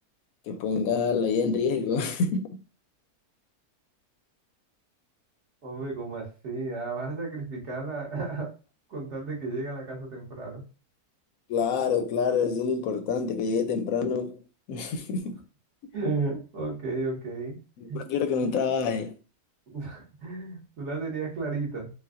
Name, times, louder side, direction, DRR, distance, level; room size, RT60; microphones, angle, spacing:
voice 1, 0.5-2.5 11.5-14.4 14.7-15.4 17.8-19.1, left 5 dB, 70° left, 0.9 m, -27 dB
voice 2, 5.6-8.5 8.9-10.6 15.9-17.6 17.9-18.0 19.7-21.9, right 3 dB, 50° right, 1.8 m, -33 dB
5.0 x 2.4 x 2.5 m
omnidirectional pair, 1.6 m